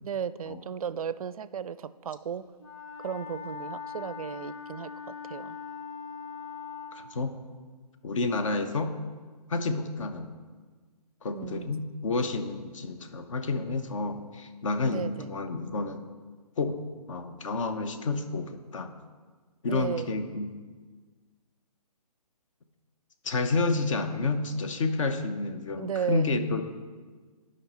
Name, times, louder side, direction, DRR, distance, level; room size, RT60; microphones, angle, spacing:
voice 1, 0.0-2.5 3.0-4.9 5.3-5.6 11.3-11.7 14.9-15.3 19.7-20.1 25.8-26.6, right 8 dB, 60° right, 16 dB, 0.4 m, -35 dB
Wind instrument woodwind instrument, 2.6-7.0, left 6 dB, 35° left, 1.4 m, -41 dB
voice 2, 6.9-7.3 8.0-8.9 9.5-10.3 11.2-16.0 16.6-16.8 17.1-18.9 19.6-20.6 23.2-26.6, left 3 dB, 50° left, 8 dB, 0.8 m, -30 dB
11.0 x 5.2 x 4.2 m, 1.5 s
hypercardioid pair, 150°, 20 cm